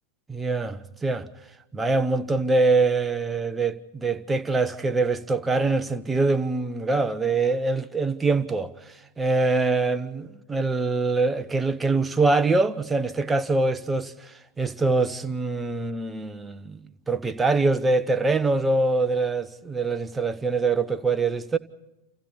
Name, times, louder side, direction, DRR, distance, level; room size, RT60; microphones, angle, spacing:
voice 1, 0.3-1.3 1.7-8.7 9.2-16.8 17.1-21.6, right 3 dB, 10° right, 1.0 m, -24 dB
29.0 x 28.5 x 4.2 m
figure-of-eight pair, 90°, 0 cm